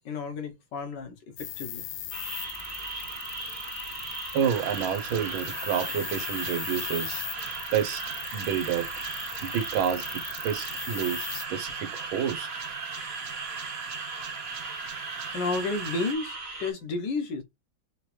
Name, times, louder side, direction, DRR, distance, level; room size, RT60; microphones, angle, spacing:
voice 1, 0.1-1.9 15.3-17.4, left 3 dB, 65° left, 1.6 m, -32 dB
sound 1, 1.4-11.5, left 12 dB, 85° left, 0.8 m, -39 dB
sound 2, 2.1-16.7, right 2 dB, 35° right, 1.5 m, -39 dB
voice 2, 4.3-7.3 7.7-8.0 8.3-8.9 9.4-10.0 10.4-12.5, right 8 dB, 80° right, 1.6 m, -29 dB
sound 3, 4.4-16.1, right 7 dB, 65° right, 0.9 m, -39 dB
4.8 x 3.0 x 3.2 m
omnidirectional pair, 2.2 m